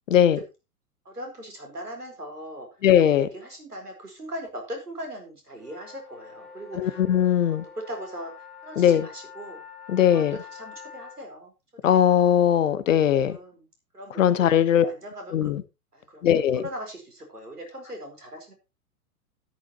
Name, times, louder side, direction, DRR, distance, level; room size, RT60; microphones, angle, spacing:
voice 1, 0.1-0.4 2.8-3.3 6.8-7.6 8.8-9.0 9.9-10.4 11.8-13.4 14.2-14.9 15.3-15.6 16.2-16.6, left 9 dB, 55° left, 15 dB, 1.2 m, -20 dB
voice 2, 1.0-2.7 3.0-7.0 7.4-8.3 8.6-9.6 10.0-11.5 11.8-12.5 13.2-13.7 13.9-15.5 15.9-18.5, equal, 80° right, 3 dB, 4.6 m, -40 dB
sound 1, 5.6-11.2, left 6 dB, ahead, 3.6 m, -45 dB
12.5 x 11.0 x 3.0 m, 0.26 s
figure-of-eight pair, 105°, 45 cm